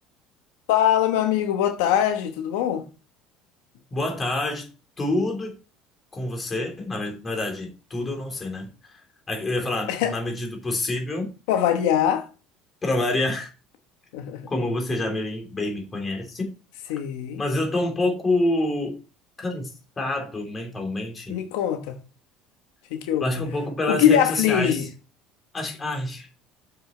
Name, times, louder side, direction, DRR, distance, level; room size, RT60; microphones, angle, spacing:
voice 1, 0.7-2.8 9.9-10.2 11.5-12.2 14.1-14.4 16.9-17.4 21.3-22.0 22.9-23.4 23.9-24.9, left 10 dB, 85° left, 1.1 m, -22 dB
voice 2, 3.9-4.7 5.0-5.6 6.1-9.0 9.3-11.3 12.8-13.5 14.5-16.5 17.4-18.9 19.4-21.4 23.2-24.9 25.5-26.3, left 2 dB, 25° left, 3.3 m, -27 dB
7.1 x 6.5 x 4.4 m
cardioid pair, 120°, 0 cm